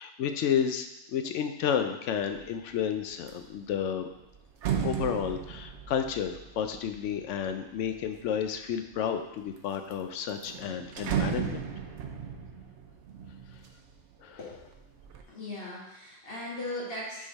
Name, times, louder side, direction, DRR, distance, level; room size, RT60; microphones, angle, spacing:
voice 1, 0.0-4.1 4.8-11.7 14.2-14.4, left 8 dB, 80° left, 7 dB, 0.9 m, -31 dB
sound 1, 2.2-2.5 2.9-8.3 8.9-9.6 9.9-10.0 10.3-14.2 14.6-15.2, right 8 dB, 75° right, 0.9 m, -36 dB
voice 2, 14.4-14.8 15.3-17.3, left 1 dB, 50° left, -7 dB, 1.9 m, -38 dB
6.1 x 4.0 x 4.0 m, 0.89 s
omnidirectional pair, 1.2 m